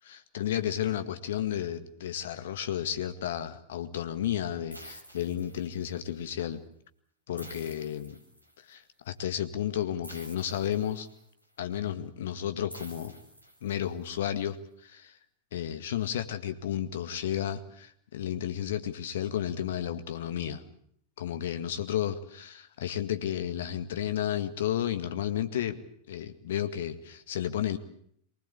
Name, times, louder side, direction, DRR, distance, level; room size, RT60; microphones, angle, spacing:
voice 1, 0.0-6.6 7.3-8.2 8.7-11.1 11.6-13.1 13.6-15.1 15.5-20.6 21.2-25.8 26.1-27.8, left 10 dB, 60° left, 9 dB, 1.9 m, -32 dB
sound 1, 4.7-6.1 7.4-8.7 10.0-11.4 12.7-14.1, equal, 85° left, 3.9 m, -49 dB
24.0 x 19.5 x 8.3 m, 0.67 s
figure-of-eight pair, 90°, 0 cm